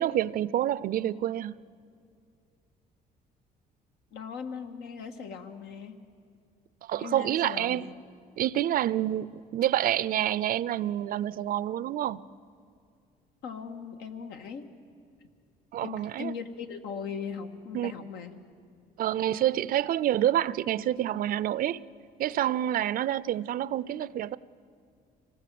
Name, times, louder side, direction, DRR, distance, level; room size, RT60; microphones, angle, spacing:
voice 1, 0.0-1.6 6.8-7.9 8.4-12.2 15.7-16.3 17.7-17.9 19.0-21.8 22.2-24.4, right 12 dB, 60° right, 0.5 m, -28 dB
voice 2, 4.1-6.0 7.0-7.9 13.4-14.7 15.8-18.3, left 6 dB, 80° left, 1.8 m, -39 dB
25.5 x 18.5 x 7.8 m
cardioid pair, 110°, 17 cm